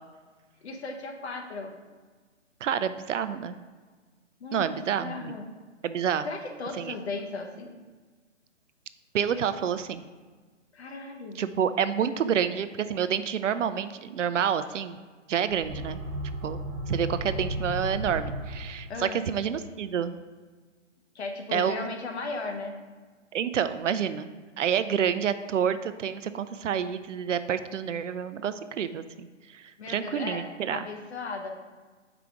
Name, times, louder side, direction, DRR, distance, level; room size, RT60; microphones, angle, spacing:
voice 1, 0.6-1.8 4.4-5.4 6.2-7.8 10.7-11.4 18.9-19.2 21.1-22.7 29.8-31.5, left 3 dB, 60° left, 3 dB, 1.0 m, -36 dB
voice 2, 2.6-3.6 4.5-5.3 5.8-6.3 6.8-6.9 9.1-10.0 11.4-15.0 15.3-16.0 16.4-16.6 16.9-20.2 21.5-21.9 23.3-24.3 24.6-29.3 29.5-30.9, right 8 dB, 75° right, 12 dB, 0.5 m, -28 dB
sound 1, 15.4-19.2, right 1 dB, 25° right, 0.8 m, -34 dB
5.7 x 4.9 x 3.7 m, 1.4 s
hypercardioid pair, 150°, 37 cm